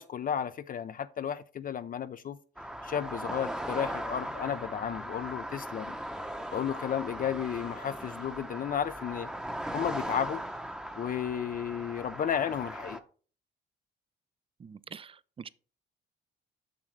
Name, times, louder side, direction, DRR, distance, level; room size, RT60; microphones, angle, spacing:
voice 1, 0.0-2.4 2.8-6.0 6.5-9.3 9.7-10.4 11.0-13.0, left 8 dB, 45° left, 0.4 m, -33 dB
sound 1, 2.6-13.0, right 1 dB, 5° right, 0.8 m, -38 dB
voice 2, 14.6-15.1 15.4-15.5, right 6 dB, 30° right, 0.4 m, -44 dB
7.3 x 6.5 x 3.2 m
cardioid pair, 90°, 20 cm